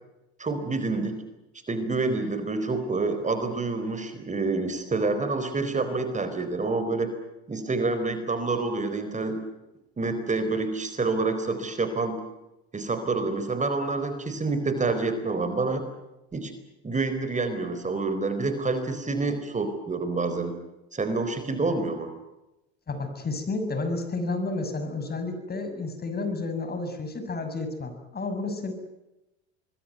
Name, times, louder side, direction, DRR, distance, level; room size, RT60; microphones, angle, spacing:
voice 1, 0.4-1.2 1.7-7.1 7.5-9.4 10.0-12.2 12.7-15.8 16.3-16.5 16.8-20.6 20.9-22.1, right 3 dB, 20° right, 9 dB, 4.4 m, -27 dB
voice 2, 22.9-28.7, left 3 dB, 30° left, 7 dB, 6.8 m, -31 dB
26.0 x 21.5 x 9.5 m, 0.96 s
hypercardioid pair, 75°, 33 cm